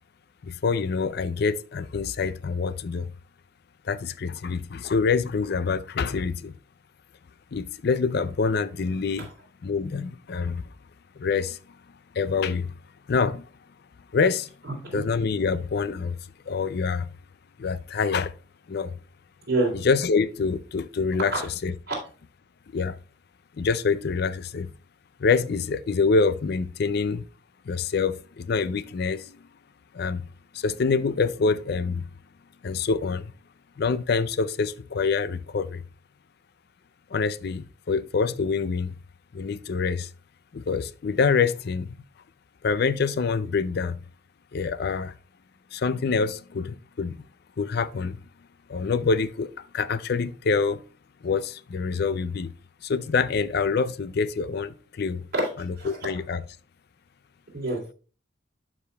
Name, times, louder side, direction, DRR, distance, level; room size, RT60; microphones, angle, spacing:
voice 1, 0.4-3.1 3.8-6.5 7.5-9.3 9.6-10.7 11.2-11.6 12.1-12.7 13.1-13.5 14.1-14.5 14.9-16.2 16.5-17.1 17.6-18.3 18.7-19.0 19.7-21.8 22.7-23.0 23.6-24.7 25.2-27.2 27.7-29.4 29.9-30.3 30.5-32.1 32.6-33.3 33.8-35.8 37.1-38.9 39.3-40.1 40.5-42.0 42.6-44.0 44.5-45.1 45.7-47.2 47.6-48.2 48.7-50.8 51.2-52.5 52.8-55.2 55.5-56.4, left 5 dB, 50° left, 0.4 m, -26 dB
voice 2, 57.5-57.9, right 2 dB, 50° right, 2.9 m, -26 dB
12.0 x 4.9 x 2.3 m
head